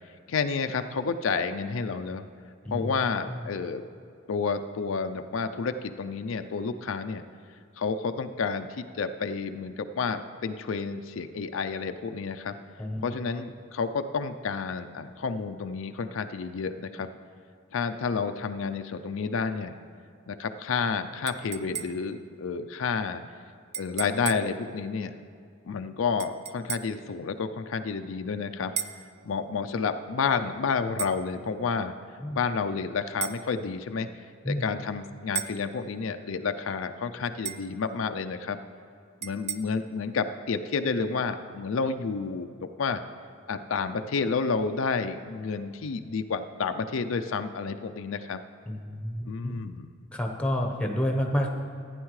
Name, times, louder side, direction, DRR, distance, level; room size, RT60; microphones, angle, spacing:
voice 1, 0.3-2.3 2.7-3.8 4.3-7.2 7.8-12.5 13.0-17.1 17.7-19.8 20.3-23.2 23.8-25.1 25.6-28.7 29.2-31.9 32.3-34.1 34.5-38.6 39.2-43.0 43.5-48.4 49.3-49.9, left 5 dB, 90° left, 8 dB, 0.5 m, -30 dB
sound 1, 21.3-22.2 23.7-24.6 26.2-27.0 28.8-29.1 31.0-31.2 33.2-33.5 35.4-35.7 37.5-37.8 39.2-39.6, right 9 dB, 35° right, 0.4 m, -35 dB
voice 2, 48.7-49.6 50.1-51.5, equal, 5° left, 2 dB, 0.9 m, -29 dB
15.0 x 9.7 x 3.2 m, 2.3 s
head